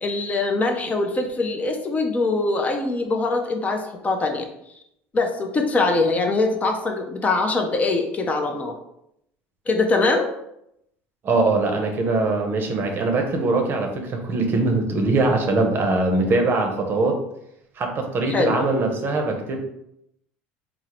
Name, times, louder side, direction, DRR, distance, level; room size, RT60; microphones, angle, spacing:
voice 1, 0.0-4.5 5.1-8.7 9.7-10.3 18.3-18.5, left 3 dB, 25° left, 3 dB, 0.5 m, -23 dB
voice 2, 11.2-17.2 17.8-19.6, right 3 dB, 40° right, 3 dB, 0.6 m, -22 dB
3.6 x 2.0 x 2.9 m, 0.79 s
supercardioid pair, 100°, 6 cm